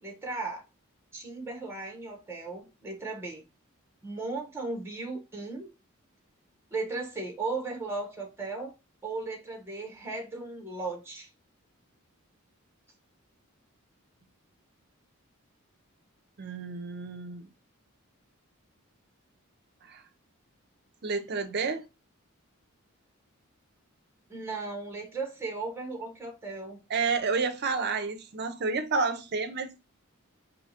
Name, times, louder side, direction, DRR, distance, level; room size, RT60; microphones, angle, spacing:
voice 1, 0.0-0.6 1.1-3.4 4.0-5.7 6.7-8.7 9.0-11.3 24.3-26.8, right 3 dB, 10° right, 1.0 m, -36 dB
voice 2, 16.4-17.5 19.8-20.0 21.0-21.9 26.9-29.7, right 4 dB, 50° right, 0.6 m, -30 dB
4.6 x 2.7 x 2.8 m
head